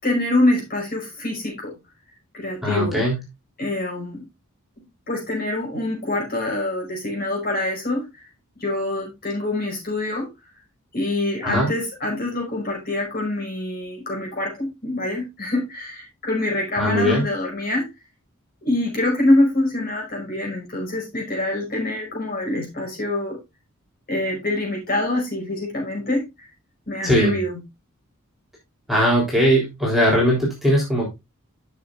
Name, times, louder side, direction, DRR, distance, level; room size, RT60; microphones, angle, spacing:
voice 1, 0.0-1.7 2.3-3.0 3.6-4.2 5.1-8.0 8.6-10.3 10.9-17.9 18.6-23.4 24.1-26.2 26.9-27.5, left 1 dB, 45° left, -1 dB, 5.2 m, -25 dB
voice 2, 2.6-3.2 11.4-11.7 16.8-17.2 27.0-27.3 28.9-31.1, equal, ahead, -4 dB, 3.4 m, -19 dB
13.0 x 6.6 x 2.5 m, 0.22 s
head